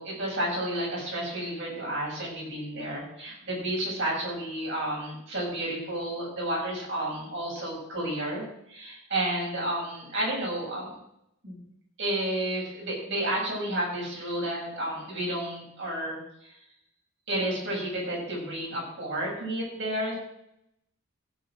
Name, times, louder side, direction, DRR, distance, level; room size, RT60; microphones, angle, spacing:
voice 1, 0.0-10.9 11.4-11.6 12.0-16.5 17.3-20.1, right 1 dB, 55° right, -4 dB, 6.5 m, -31 dB
15.5 x 5.6 x 7.7 m, 0.77 s
head